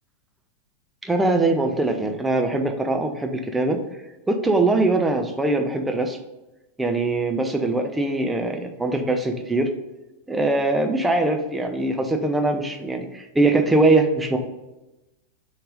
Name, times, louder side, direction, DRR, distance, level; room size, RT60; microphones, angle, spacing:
voice 1, 1.0-3.8 4.3-6.2 6.8-9.7 10.3-14.4, right 2 dB, 10° right, 4 dB, 0.7 m, -22 dB
6.5 x 4.0 x 3.8 m, 1.0 s
figure-of-eight pair, 90°, 0 cm